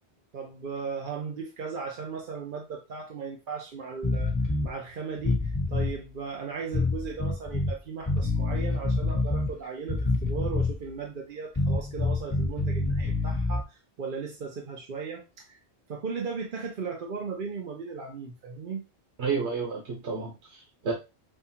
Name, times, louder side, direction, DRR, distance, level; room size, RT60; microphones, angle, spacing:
voice 1, 0.3-4.3 4.6-15.6 15.9-18.8, right 5 dB, 55° right, 1 dB, 0.8 m, -37 dB
sound 1, 4.0-4.7 5.2-5.9 6.7-7.7 8.1-9.5 9.9-10.8 11.6-13.6, left 3 dB, 15° left, 1.2 m, -27 dB
voice 2, 19.2-20.9, right 5 dB, 85° right, -2 dB, 1.2 m, -31 dB
5.6 x 2.3 x 2.8 m, 0.26 s
omnidirectional pair, 1.1 m